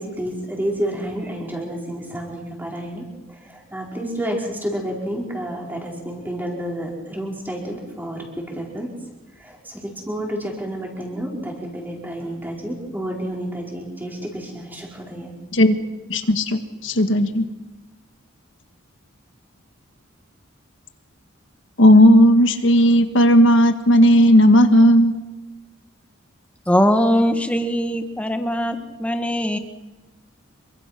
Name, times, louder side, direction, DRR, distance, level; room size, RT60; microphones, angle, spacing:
voice 1, 0.0-3.0 3.7-8.3 8.5-8.9 9.7-15.3, right 1 dB, 10° right, -1 dB, 5.0 m, -29 dB
voice 2, 16.1-17.5 21.8-25.1, equal, 65° left, 8 dB, 1.6 m, -14 dB
voice 3, 26.7-29.6, equal, 5° left, 7 dB, 1.5 m, -21 dB
27.5 x 23.5 x 6.0 m, 1.1 s
head